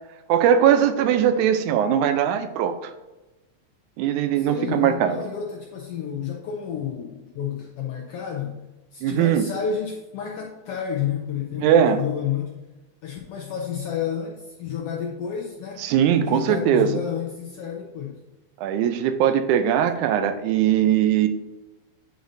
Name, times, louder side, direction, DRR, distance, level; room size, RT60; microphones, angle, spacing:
voice 1, 0.3-2.9 4.0-5.2 9.0-9.5 11.6-12.0 15.8-17.0 18.6-21.3, right 9 dB, 90° right, 9 dB, 2.0 m, -20 dB
voice 2, 4.4-8.6 8.9-12.5 13.0-15.8 16.1-18.2, left 8 dB, 80° left, 0 dB, 1.4 m, -30 dB
9.2 x 5.1 x 2.6 m, 1.1 s
omnidirectional pair, 3.4 m